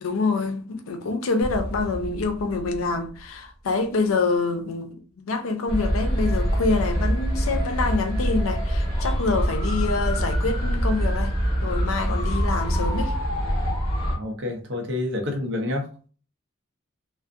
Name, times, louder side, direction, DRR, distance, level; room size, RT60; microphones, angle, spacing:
voice 1, 0.0-13.1, left 3 dB, 80° left, 0.5 m, -26 dB
sound 1, 1.4-4.4, equal, 5° right, 0.7 m, -37 dB
sound 2, 5.7-14.2, equal, 30° left, 1.2 m, -24 dB
voice 2, 14.1-15.9, left 2 dB, 55° right, 0.6 m, -28 dB
2.5 x 2.0 x 2.5 m
head